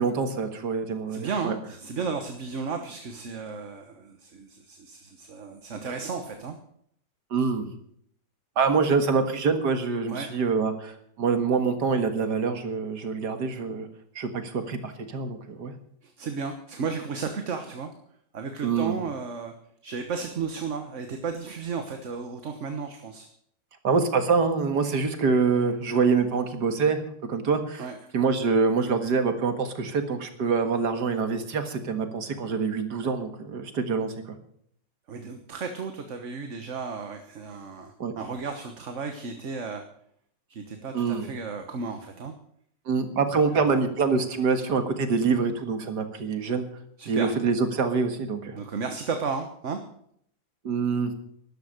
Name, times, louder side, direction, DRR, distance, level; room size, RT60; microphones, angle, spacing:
voice 1, 0.0-1.5 7.3-7.7 8.6-13.9 14.2-15.7 18.6-18.9 23.8-27.0 27.3-27.9 28.1-34.4 38.0-38.1 40.9-41.3 42.9-46.7 47.1-48.6 50.6-51.1, right 5 dB, 85° right, 7 dB, 2.3 m, -25 dB
voice 2, 1.1-6.5 10.1-10.4 16.0-17.9 18.3-19.5 19.8-23.3 27.8-28.1 35.1-39.8 40.5-42.3 43.5-43.7 47.0-47.3 48.6-49.8, right 5 dB, 50° right, 6 dB, 1.5 m, -34 dB
13.0 x 12.0 x 6.6 m, 0.67 s
omnidirectional pair, 1.8 m